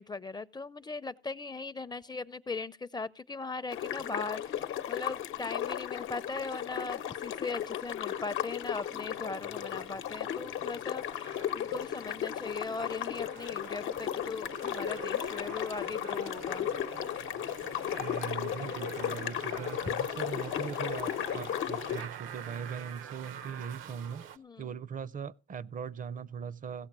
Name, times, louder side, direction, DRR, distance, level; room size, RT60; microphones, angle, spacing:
voice 1, 0.0-16.7 24.4-24.7, left 3 dB, 20° left, 0.5 m, -39 dB
sound 1, 3.7-22.0, left 10 dB, 80° left, 0.9 m, -35 dB
sound 2, 8.3-24.4, right 9 dB, 85° right, 0.8 m, -47 dB
voice 2, 18.0-24.2 24.6-26.9, right 7 dB, 45° right, 0.5 m, -40 dB
16.0 x 7.1 x 6.0 m
cardioid pair, 90°, 20 cm